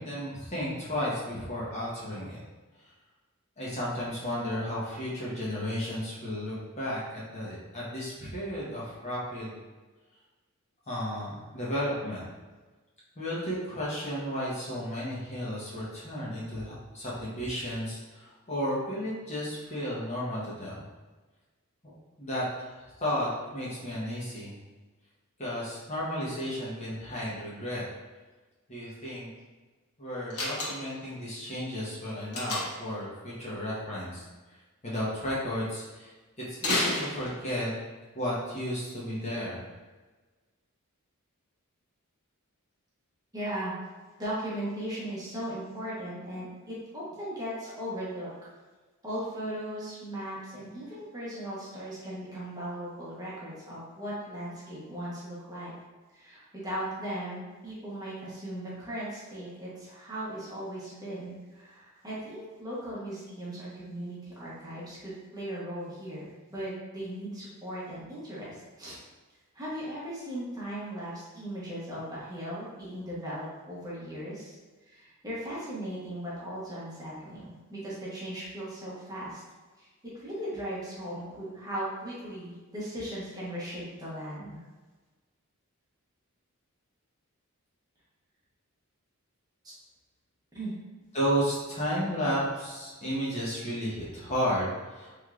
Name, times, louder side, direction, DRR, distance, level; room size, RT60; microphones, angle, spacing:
voice 1, 0.0-2.4 3.6-9.6 10.9-12.2 13.2-20.8 21.8-24.5 25.4-27.9 28.7-29.3 30.0-34.2 34.8-36.1 36.4-37.7 38.1-39.6 91.1-95.2, equal, 30° left, -8 dB, 1.0 m, -33 dB
Slam, 30.3-31.1 32.3-32.9 36.6-37.7, left 2 dB, 90° left, 1.0 m, -30 dB
voice 2, 43.3-43.7 44.2-48.3 49.0-55.7 56.1-69.0 69.5-74.5 74.8-79.4 79.8-79.9 80.2-84.6 90.5-90.8, right 1 dB, 15° right, -8 dB, 0.9 m, -38 dB
3.6 x 3.2 x 2.4 m, 1.3 s
head